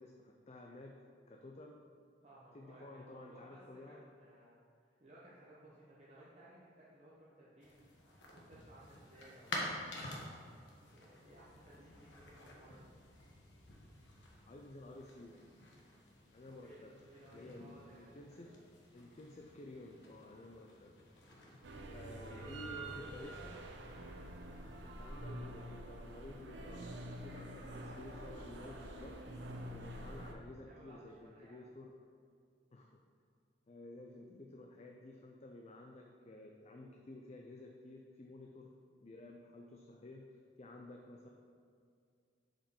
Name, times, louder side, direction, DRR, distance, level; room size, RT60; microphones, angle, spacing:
voice 1, 0.0-1.8 2.5-4.0 14.4-15.4 16.3-16.9 17.3-18.5 18.9-21.0 21.9-23.6 24.8-29.2 29.7-32.0 32.7-32.9 33.7-38.7 39.0-41.3, left 2 dB, 35° left, 1 dB, 0.5 m, -53 dB
voice 2, 2.2-7.8 8.0-10.2 10.9-12.9 16.5-18.6 22.1-23.5 30.6-31.6, right 1 dB, 35° right, -8 dB, 1.1 m, -59 dB
sound 1, 7.6-25.3, left 1 dB, 80° left, 1.3 m, -51 dB
sound 2, 21.6-30.3, right 1 dB, 80° right, 0.8 m, -47 dB
7.3 x 5.1 x 5.2 m, 2.2 s
head